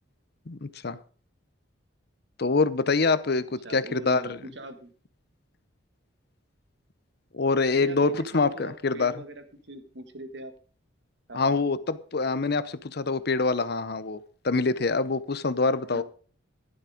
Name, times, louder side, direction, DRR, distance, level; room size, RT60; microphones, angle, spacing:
voice 1, 0.5-1.0 2.4-4.4 7.3-9.1 11.3-16.0, left 3 dB, 55° left, 15 dB, 0.7 m, -25 dB
voice 2, 3.6-4.9 7.6-10.5 11.3-11.6 15.6-16.0, right 1 dB, 60° right, 7 dB, 1.8 m, -42 dB
11.0 x 10.5 x 5.1 m, 0.41 s
head